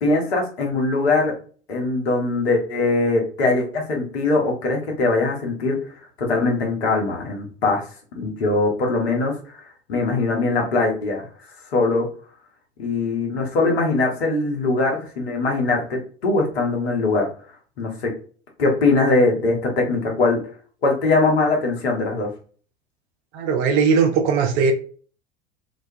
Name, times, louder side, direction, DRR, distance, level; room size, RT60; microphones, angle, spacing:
voice 1, 0.0-1.3 1.7-5.8 6.2-7.8 8.2-9.3 9.9-11.2 11.7-12.1 12.8-17.3 17.8-18.1 18.6-20.4 20.8-22.3, left 3 dB, 70° left, 0 dB, 0.9 m, -21 dB
voice 2, 23.3-24.7, right 5 dB, 50° right, 5 dB, 0.6 m, -19 dB
2.3 x 2.2 x 2.6 m, 0.42 s
figure-of-eight pair, 70°, 33 cm